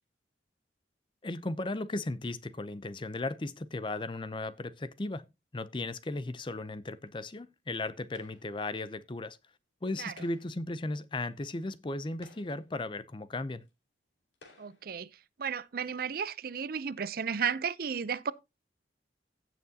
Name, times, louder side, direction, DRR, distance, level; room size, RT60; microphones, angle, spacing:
voice 1, 1.2-5.3 5.5-9.4 9.8-13.7, left 2 dB, 30° left, 0.6 m, -36 dB
sound 1, 8.1-8.7 10.0-10.7 11.5-11.6 12.1-12.8 13.7-13.8 14.3-14.9, left 2 dB, 90° left, 2.8 m, -57 dB
voice 2, 14.6-15.1 15.4-18.3, right 6 dB, 55° right, 0.5 m, -33 dB
16.5 x 6.0 x 2.8 m
head